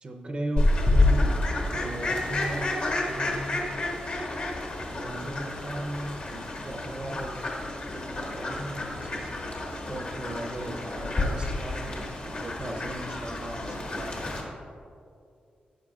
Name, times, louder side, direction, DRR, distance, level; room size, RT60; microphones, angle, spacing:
voice 1, 0.0-1.3 1.7-2.8 3.1-3.7 4.9-7.4 7.9-9.3 9.8-14.4, right 1 dB, 35° right, 3 dB, 0.6 m, -37 dB
Fowl, 0.6-14.4, left 2 dB, 50° left, 1.5 m, -29 dB
13.0 x 8.2 x 2.4 m, 2.4 s
wide cardioid pair, 115°, 3 cm